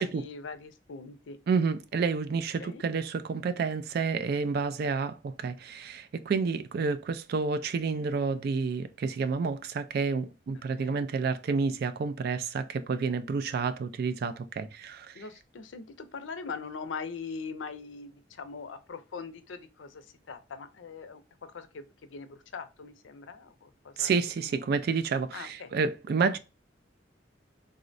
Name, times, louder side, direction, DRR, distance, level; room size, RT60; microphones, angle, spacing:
voice 1, 0.0-1.4 2.6-2.8 10.8-11.0 15.1-21.2 21.5-24.1 25.3-25.7, left 5 dB, 90° left, 0.5 m, -41 dB
voice 2, 1.5-15.1 24.0-26.4, right 5 dB, 55° right, 0.3 m, -29 dB
3.7 x 2.0 x 2.5 m
head